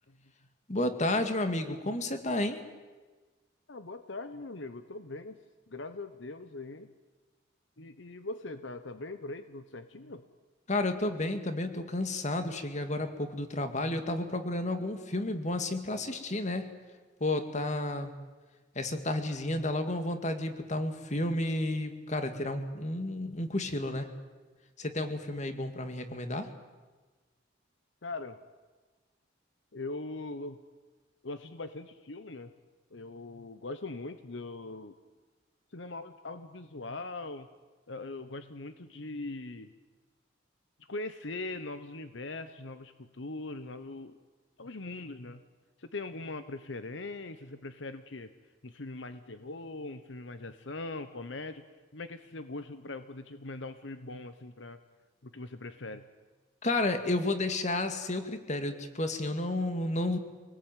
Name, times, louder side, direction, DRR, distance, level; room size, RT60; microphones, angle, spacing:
voice 1, 0.7-2.6 10.7-16.7 17.2-18.1 18.8-24.1 24.8-26.5 56.6-60.2, left 2 dB, 40° left, 7 dB, 2.2 m, -31 dB
voice 2, 3.7-5.4 5.7-6.9 7.8-10.2 28.0-28.4 29.7-30.6 31.2-32.5 32.9-35.0 35.7-37.5 37.9-39.7 40.9-44.2 44.6-45.4 45.8-48.3 48.6-51.6 51.9-54.8 55.2-56.0, left 2 dB, 70° left, 10 dB, 1.1 m, -41 dB
26.0 x 19.5 x 9.2 m, 1.3 s
head